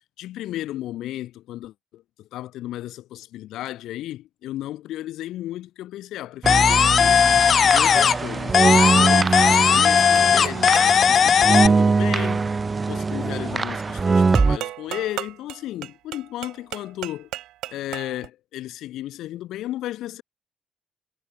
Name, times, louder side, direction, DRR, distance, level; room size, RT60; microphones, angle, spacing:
voice 1, 0.2-7.3 7.7-12.5 12.9-17.3 17.7-20.2, left 14 dB, 85° left, 6.1 m, -34 dB
sound 1, 6.4-14.6, right 4 dB, 30° right, 3.4 m, -22 dB
sound 2, 6.5-8.3 8.5-11.7, left 7 dB, 55° left, 1.5 m, -17 dB
sound 3, 10.1-11.0 14.3-18.3, right 15 dB, 90° right, 3.3 m, -35 dB
cardioid pair, 90°, 0 cm